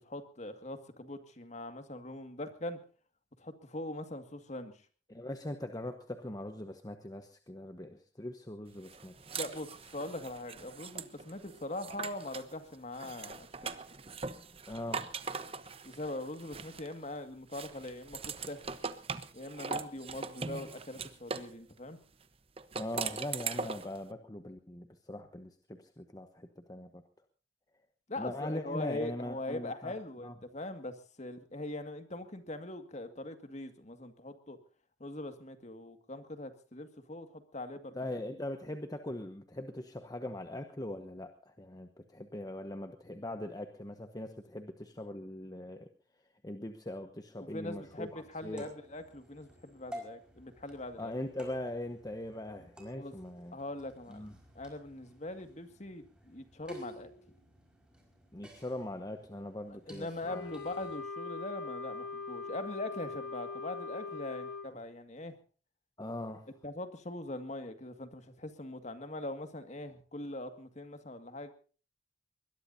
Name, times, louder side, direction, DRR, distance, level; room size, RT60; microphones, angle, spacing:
voice 1, 0.0-2.8 3.4-4.7 9.3-13.7 15.8-18.6 19.3-22.0 28.1-34.6 35.0-38.0 47.4-51.1 53.0-53.1 53.5-54.2 54.6-57.1 59.9-65.4 66.6-71.5, left 2 dB, 40° left, 8 dB, 2.0 m, -42 dB
voice 2, 5.1-9.1 14.7-15.2 22.7-27.0 28.2-30.0 30.2-30.3 37.9-45.9 46.4-48.7 51.0-53.6 54.1-54.3 58.3-60.4 66.0-66.5, left 1 dB, 20° left, 7 dB, 1.1 m, -41 dB
sound 1, 8.8-12.5 12.9-17.1 17.5-21.5 22.6-24.0, right 5 dB, 30° right, 1.0 m, -41 dB
sound 2, 47.7-61.0, equal, 5° right, 5.1 m, -53 dB
Wind instrument woodwind instrument, 60.2-64.7, left 4 dB, 85° left, 1.9 m, -41 dB
22.0 x 21.0 x 2.7 m, 0.38 s
head